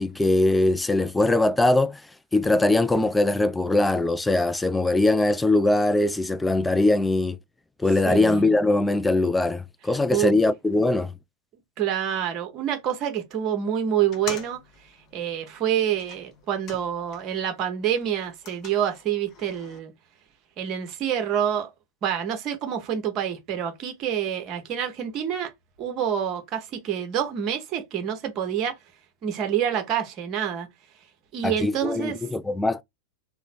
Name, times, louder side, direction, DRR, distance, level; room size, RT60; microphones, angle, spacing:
voice 1, 0.0-2.0 2.3-7.4 7.8-11.1 31.4-32.8, left 2 dB, 5° left, 0.3 m, -21 dB
voice 2, 8.0-8.5 10.1-10.4 11.8-14.6 15.1-19.9 20.6-21.7 22.0-25.5 25.8-28.8 29.2-30.7 31.3-32.2, right 9 dB, 35° right, 0.8 m, -27 dB
sound 1, 14.0-17.5 17.8-19.8, left 6 dB, 35° left, 0.8 m, -44 dB
3.0 x 2.1 x 4.0 m
figure-of-eight pair, 90°, 0 cm